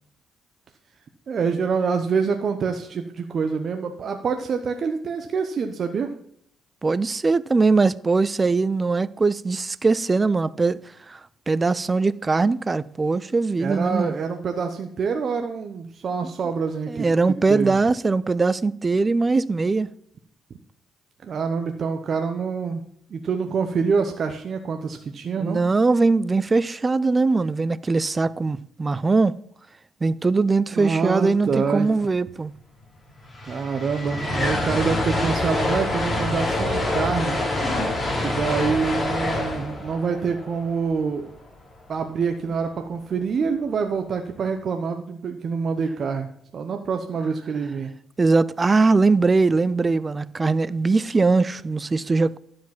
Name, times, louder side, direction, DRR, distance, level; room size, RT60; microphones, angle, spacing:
voice 1, 1.3-6.1 13.6-17.8 21.2-22.8 23.1-25.6 30.7-31.9 33.4-37.4 38.2-41.3 41.9-47.9, right 5 dB, 50° right, 0.8 m, -26 dB
voice 2, 6.8-10.8 11.1-11.2 11.5-14.1 16.9-19.9 25.4-29.3 30.0-32.5 48.2-52.4, right 3 dB, 25° right, 0.4 m, -21 dB
sound 1, 32.8-32.9 33.1-41.3, left 1 dB, 25° left, 3.3 m, -26 dB
11.5 x 5.1 x 5.8 m
cardioid pair, 90°, 0 cm